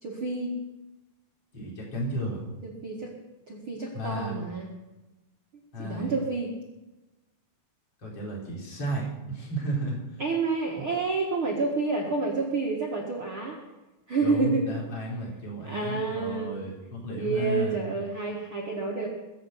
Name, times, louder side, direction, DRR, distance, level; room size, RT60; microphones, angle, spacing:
voice 1, 0.0-0.5 2.6-3.1 3.5-4.7 5.8-6.5 10.2-13.6 14.1-14.8 15.7-16.6 17.1-19.1, right 3 dB, 45° right, -2 dB, 1.8 m, -29 dB
voice 2, 1.5-2.5 3.9-4.3 5.7-6.2 8.0-10.2 10.8-11.0 14.2-17.8, right 1 dB, 25° left, -3 dB, 4.4 m, -33 dB
21.5 x 7.6 x 7.9 m, 1.1 s
omnidirectional pair, 4.8 m